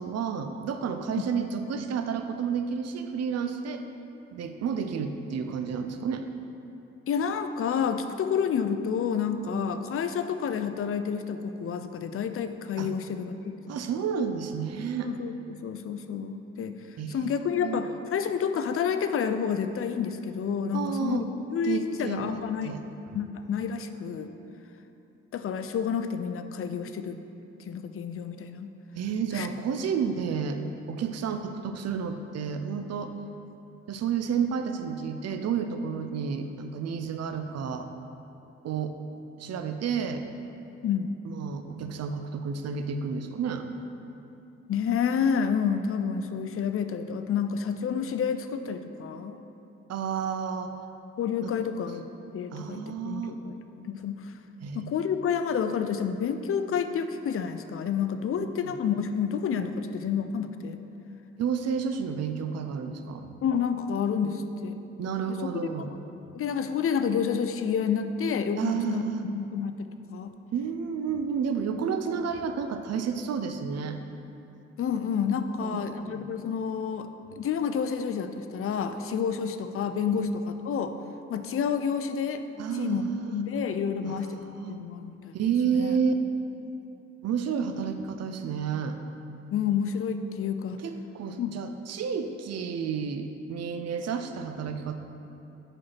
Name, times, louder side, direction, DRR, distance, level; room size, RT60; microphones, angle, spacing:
voice 1, 0.0-3.8 4.3-6.2 12.8-12.9 13.7-15.1 17.0-17.8 20.7-21.3 21.6-22.8 23.1-23.2 28.9-30.6 30.9-33.1 33.9-37.9 38.6-39.0 39.4-40.3 41.2-43.7 49.9-50.7 51.4-51.5 52.5-53.4 54.6-54.9 58.3-58.4 61.4-63.3 65.0-65.9 68.6-69.2 70.5-74.0 75.6-76.2 80.1-80.3 82.6-83.4 84.1-84.8 85.3-86.1 87.2-89.0 90.8-95.0, right 6 dB, 60° right, 7 dB, 0.6 m, -31 dB
voice 2, 7.1-13.8 15.0-16.8 17.1-22.8 23.1-24.3 25.3-27.2 27.7-28.7 29.3-29.5 40.8-41.2 44.7-49.4 51.2-52.0 52.3-54.3 54.7-60.8 63.4-64.8 65.3-65.5 66.3-70.3 74.8-77.1 77.4-80.9 81.3-82.4 82.7-85.3 85.8-86.0 89.5-90.8 91.4-91.5, left 7 dB, 45° left, 9 dB, 0.5 m, -29 dB
4.9 x 4.4 x 5.6 m, 2.8 s
supercardioid pair, 50°, 30 cm